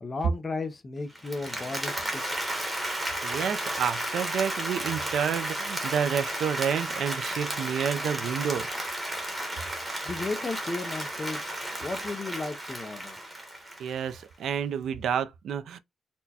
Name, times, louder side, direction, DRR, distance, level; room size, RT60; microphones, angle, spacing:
voice 1, 0.0-2.4 10.0-11.4 11.8-13.2, left 3 dB, 20° left, 0.5 m, -34 dB
Applause, 1.1-14.2, right 1 dB, 10° right, 0.9 m, -33 dB
voice 2, 3.2-8.7 13.8-15.8, right 8 dB, 65° right, 0.4 m, -29 dB
4.2 x 2.1 x 2.7 m
wide cardioid pair, 170°, 0 cm